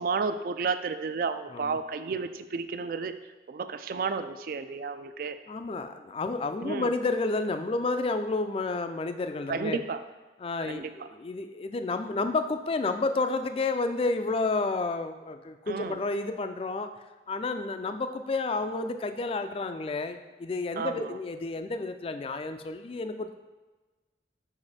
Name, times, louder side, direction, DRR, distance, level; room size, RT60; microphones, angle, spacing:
voice 1, 0.0-5.4 6.6-6.9 9.5-10.0 10.6-11.1 15.7-16.0 20.8-21.2, right 4 dB, 50° right, 11 dB, 0.3 m, -32 dB
voice 2, 5.5-9.8 10.4-10.8 11.2-16.9 17.3-23.3, left 3 dB, 30° left, 8 dB, 0.3 m, -30 dB
5.2 x 4.9 x 4.2 m, 1.2 s
head